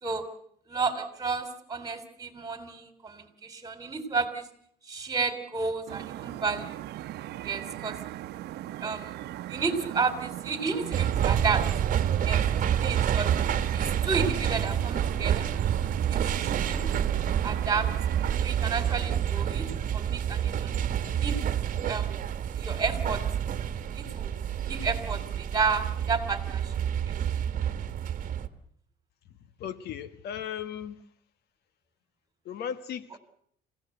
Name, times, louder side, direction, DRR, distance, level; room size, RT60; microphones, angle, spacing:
voice 1, 0.7-4.5 4.8-6.9 7.4-8.0 8.8-9.2 9.5-11.6 12.2-12.4 12.8-13.3 13.7-15.5 16.1-17.1 17.4-17.9 18.4-20.7 21.2-21.4 21.9-22.1 22.6-23.2 23.9-24.3 24.6-26.7 27.1-27.2, right 4 dB, 20° right, 3.4 m, -31 dB
sound 1, 5.9-18.4, right 14 dB, 75° right, 0.9 m, -39 dB
sound 2, 10.9-28.5, right 9 dB, 50° right, 1.4 m, -28 dB
voice 2, 29.3-31.0 32.4-33.2, left 9 dB, 75° left, 1.4 m, -37 dB
27.5 x 16.5 x 7.9 m
cardioid pair, 110°, 17 cm